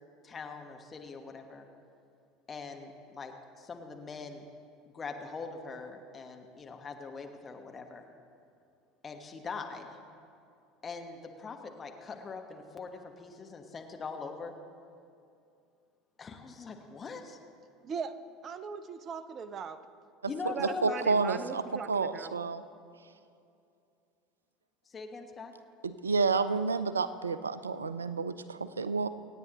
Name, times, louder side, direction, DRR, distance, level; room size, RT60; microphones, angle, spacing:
voice 1, 0.2-1.7 2.5-4.4 4.9-8.0 9.0-10.0 10.8-14.5 16.2-17.4 20.3-21.1 24.9-25.5, left 4 dB, 25° left, 4 dB, 1.2 m, -42 dB
voice 2, 17.8-18.1 18.4-19.8 20.4-22.4, right 6 dB, 40° right, 13 dB, 0.6 m, -39 dB
voice 3, 20.6-21.6 21.9-22.6 25.8-29.1, right 4 dB, 80° right, 14 dB, 0.4 m, -30 dB
26.5 x 9.1 x 3.0 m, 2.5 s
figure-of-eight pair, 70°, 0 cm